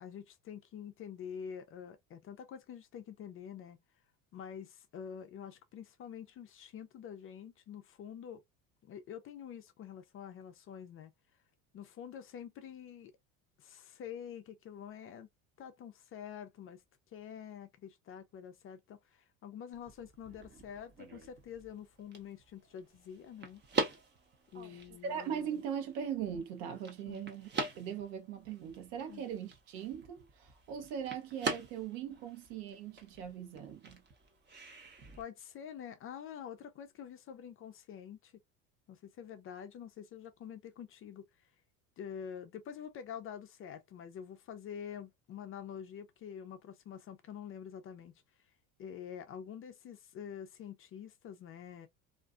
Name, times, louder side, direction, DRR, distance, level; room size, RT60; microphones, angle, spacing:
voice 1, 0.0-3.8 4.3-8.4 8.8-11.1 11.7-13.1 13.6-15.3 15.6-16.8 17.1-23.6 24.5-25.5 27.1-27.3 29.1-29.3 35.1-38.3 38.9-41.3 42.0-48.2 48.8-51.9, left 8 dB, 35° left, 0.4 m, -47 dB
sound 1, 19.7-35.2, right 3 dB, 25° right, 0.7 m, -43 dB
voice 2, 24.6-27.5 27.8-34.0, right 8 dB, 75° right, 0.9 m, -40 dB
2.5 x 2.3 x 2.3 m
supercardioid pair, 100°, 41 cm